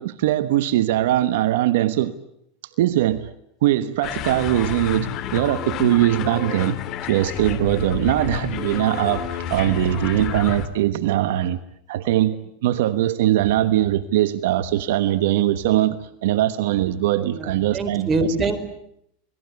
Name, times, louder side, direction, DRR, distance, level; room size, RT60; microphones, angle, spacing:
voice 1, 0.0-2.1 2.8-3.3 3.6-6.8 7.1-11.6 11.9-18.3, right 13 dB, 75° right, 13 dB, 1.3 m, -21 dB
sound 1, 4.0-10.7, left 10 dB, 45° left, 3.0 m, -30 dB
voice 2, 17.2-18.6, right 3 dB, 25° right, 10 dB, 4.5 m, -25 dB
28.0 x 20.0 x 9.6 m, 0.74 s
supercardioid pair, 120°, 0 cm